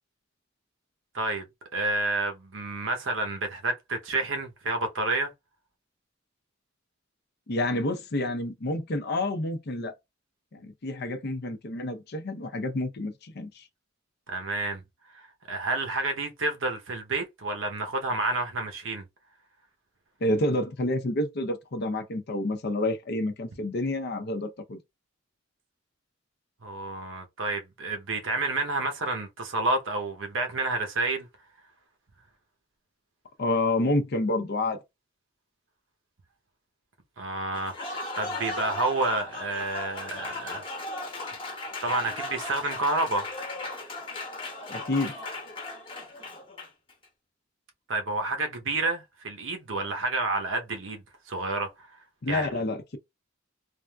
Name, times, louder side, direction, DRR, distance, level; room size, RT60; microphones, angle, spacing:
voice 1, 1.1-1.4 1.7-5.3 14.3-14.8 15.1-19.0 26.6-31.3 37.2-40.6 41.8-43.3 47.9-51.9 52.3-52.5, right 2 dB, 70° right, 0.8 m, -29 dB
voice 2, 7.5-9.9 10.5-13.7 20.2-24.8 33.4-34.8 44.7-45.2 52.2-53.0, left 2 dB, 55° left, 0.6 m, -29 dB
Applause, 37.5-46.9, left 2 dB, 25° left, 1.0 m, -37 dB
3.4 x 2.5 x 2.3 m
head